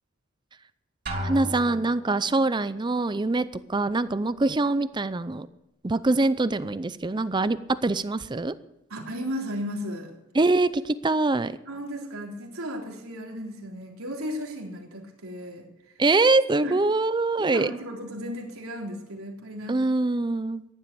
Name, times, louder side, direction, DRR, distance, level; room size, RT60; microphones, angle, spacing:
Drum, 1.1-2.3, equal, 45° right, 2.8 m, -33 dB
voice 1, 1.2-5.5 5.8-8.5 10.3-11.6 16.0-17.7 19.7-20.6, right 2 dB, 20° right, 14 dB, 0.5 m, -24 dB
voice 2, 8.9-10.1 11.7-15.9 16.6-16.8 17.4-19.8, equal, 90° right, 0 dB, 3.6 m, -35 dB
14.5 x 11.0 x 6.9 m, 0.89 s
head